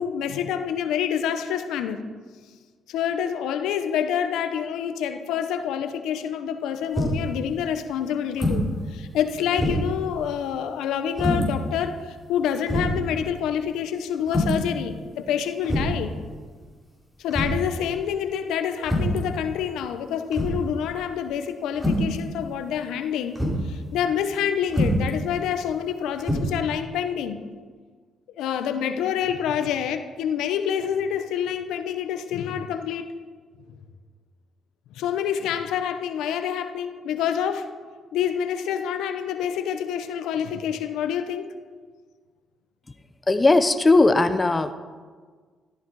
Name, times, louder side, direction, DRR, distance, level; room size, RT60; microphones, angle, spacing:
voice 1, 0.0-2.0 2.9-16.1 17.2-23.4 23.6-27.4 28.4-33.0 34.9-37.7 38.1-41.5, left 8 dB, 90° left, 9 dB, 0.9 m, -27 dB
sound 1, 6.9-7.3 8.3-8.7 9.1-9.2 9.6-10.0 11.1-11.5 12.2-12.3 12.7-13.0 14.3-14.7 15.6-16.0 17.3-17.7 18.8-19.2 20.3-20.7 21.7-22.1 23.3-23.6 24.7-25.1 26.2-26.4, equal, 5° right, 4.5 m, -24 dB
voice 2, 43.3-44.7, left 2 dB, 20° left, 10 dB, 0.8 m, -18 dB
14.5 x 13.0 x 4.8 m, 1.5 s
cardioid pair, 90°, 0 cm